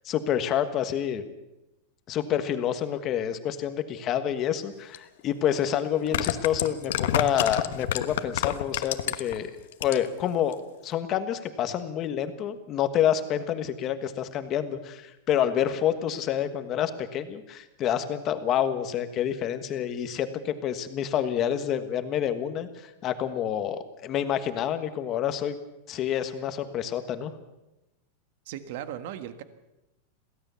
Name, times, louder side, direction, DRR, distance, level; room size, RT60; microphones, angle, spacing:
voice 1, 0.0-1.2 2.1-9.5 9.8-10.6 10.8-25.5 25.9-27.3, left 10 dB, 25° left, 9 dB, 1.4 m, -28 dB
sound 1, 4.9-5.0 5.9-9.4 9.7-10.2 10.5-10.6, left 11 dB, 70° left, 1.2 m, -28 dB
voice 2, 28.4-29.4, right 10 dB, 55° right, 10 dB, 1.5 m, -37 dB
22.5 x 16.5 x 7.0 m, 0.98 s
supercardioid pair, 170°, 0 cm